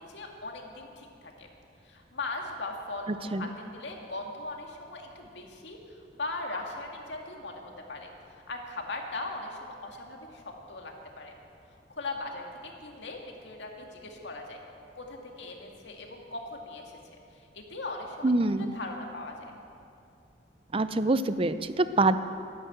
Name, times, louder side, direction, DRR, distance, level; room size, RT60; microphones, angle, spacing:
voice 1, 0.0-1.5 1.8-8.1 8.5-11.3 11.9-14.6 14.9-17.0 17.5-18.3 18.6-19.5, left 2 dB, 85° left, 1 dB, 2.0 m, -39 dB
voice 2, 18.2-18.7 20.7-22.2, right 2 dB, 30° right, 12 dB, 0.5 m, -25 dB
13.0 x 11.0 x 7.9 m, 2.5 s
head